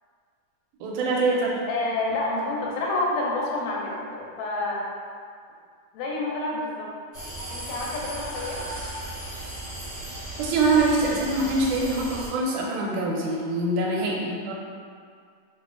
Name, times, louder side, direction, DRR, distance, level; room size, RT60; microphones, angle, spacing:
voice 1, 0.8-1.6 10.4-14.5, right 2 dB, 85° right, -3 dB, 2.0 m, -24 dB
voice 2, 1.7-4.9 5.9-6.9 7.5-8.6, left 2 dB, 80° left, -3 dB, 1.6 m, -28 dB
sound 1, 7.1-12.3, right 1 dB, 45° right, 0.7 m, -36 dB
5.7 x 2.6 x 2.4 m, 2.1 s
omnidirectional pair, 3.6 m